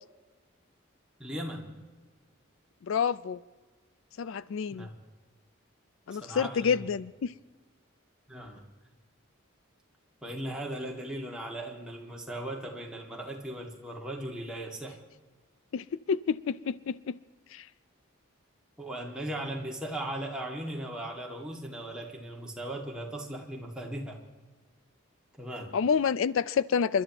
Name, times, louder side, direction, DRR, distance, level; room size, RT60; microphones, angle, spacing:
voice 1, 1.2-1.7 4.7-5.0 6.1-6.8 8.3-8.6 10.2-15.0 18.8-24.2 25.4-25.8, right 1 dB, 5° right, 1.9 m, -38 dB
voice 2, 2.9-3.4 4.2-4.9 6.1-7.3 15.7-17.2 17.5-17.7 25.7-27.0, left 6 dB, 70° left, 0.4 m, -28 dB
29.5 x 12.0 x 2.9 m
head